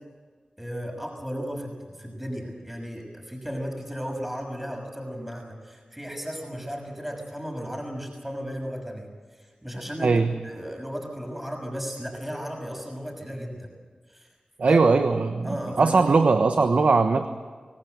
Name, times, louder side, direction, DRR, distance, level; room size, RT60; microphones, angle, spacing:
voice 1, 0.6-9.1 9.4-13.7 14.1-14.3 14.6-14.8 15.4-16.0, equal, 5° right, 1 dB, 6.4 m, -35 dB
voice 2, 10.0-10.3 14.6-17.3, right 4 dB, 75° right, 8 dB, 1.2 m, -20 dB
26.0 x 18.0 x 8.0 m, 1.5 s
cardioid pair, 40°, 2 cm